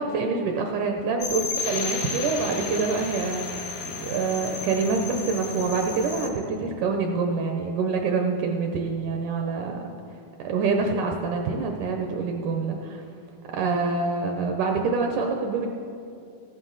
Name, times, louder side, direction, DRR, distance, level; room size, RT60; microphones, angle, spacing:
voice 1, 0.0-9.9 10.4-13.0 13.5-15.7, right 4 dB, 75° right, 2 dB, 1.9 m, -26 dB
sound 1, 1.2-6.3, left 5 dB, 75° left, 2.7 m, -33 dB
14.5 x 11.5 x 3.9 m, 2.5 s
omnidirectional pair, 4.2 m